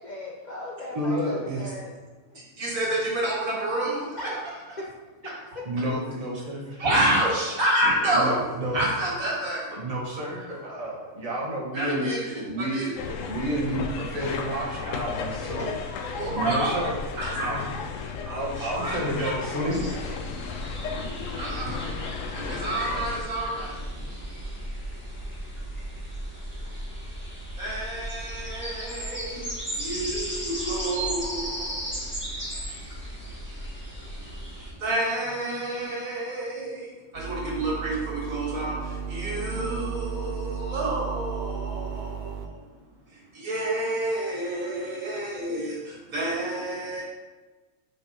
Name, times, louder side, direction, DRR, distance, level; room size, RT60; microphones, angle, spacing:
voice 1, 0.0-1.9 2.3-2.4 4.2-4.4 4.8-4.9 5.2-5.6 15.6-15.7 19.9-20.0 21.2-21.3, left 1 dB, 45° left, -3 dB, 0.7 m, -38 dB
voice 2, 0.9-1.6 5.6-6.8 8.1-8.8 9.7-12.8 13.3-15.7 16.3-16.9 17.4-17.6 17.9-20.0, right 1 dB, 30° right, -3 dB, 1.2 m, -30 dB
voice 3, 2.3-4.2 6.8-8.4 8.7-9.7 11.7-12.4 12.7-12.9 16.1-16.8 17.1-17.6 18.6-19.3 21.4-21.9 22.3-24.1 27.6-32.3 32.7-32.8 34.2-34.5 34.8-42.6 43.1-47.0, right 1 dB, 85° right, -5 dB, 2.2 m, -29 dB
sound 1, 13.0-23.2, left 5 dB, 75° left, 0.9 m, -34 dB
sound 2, 19.7-34.7, right 1 dB, 10° left, 1.6 m, -35 dB
sound 3, 37.1-42.5, right 6 dB, 65° right, 0.6 m, -34 dB
5.0 x 4.8 x 4.2 m, 1.3 s
omnidirectional pair, 1.4 m